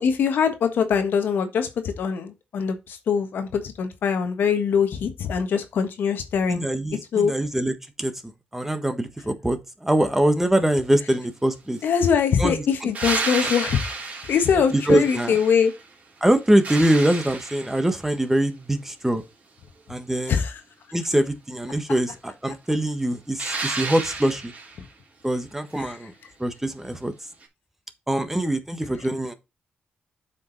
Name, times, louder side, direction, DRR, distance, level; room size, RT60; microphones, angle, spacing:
voice 1, 0.0-6.6 7.1-7.3 11.8-13.8 14.3-15.7 20.3-20.6 25.8-26.0, left 7 dB, 85° left, 1.5 m, -23 dB
voice 2, 6.5-8.1 8.5-11.8 12.4-12.9 13.4-13.5 14.7-15.4 16.2-19.2 19.9-20.4 20.9-24.5 25.2-26.1 26.4-27.1 28.1-29.3, right 1 dB, 10° right, 1.4 m, -23 dB
sound 1, 12.9-15.9 16.3-18.0 23.4-24.8 27.4-27.5, right 3 dB, 45° right, 3.2 m, -31 dB
8.2 x 5.3 x 4.0 m
cardioid pair, 105°, 3 cm